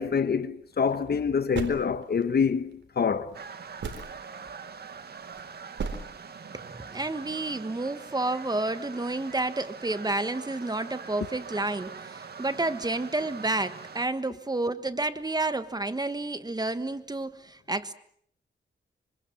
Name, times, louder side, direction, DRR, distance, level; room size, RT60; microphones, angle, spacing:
voice 1, 0.0-3.3, left 6 dB, 55° left, 1.5 m, -26 dB
sound 1, 0.7-1.1 1.5-2.4 3.3-3.4 3.8-4.3 5.1-5.4 5.8-6.0, right 5 dB, 75° right, 4.1 m, -34 dB
sound 2, 3.3-14.1, right 6 dB, 55° right, 2.1 m, -43 dB
voice 2, 6.5-17.9, right 2 dB, 20° right, 1.5 m, -30 dB
25.5 x 25.5 x 7.5 m
wide cardioid pair, 105°, 19 cm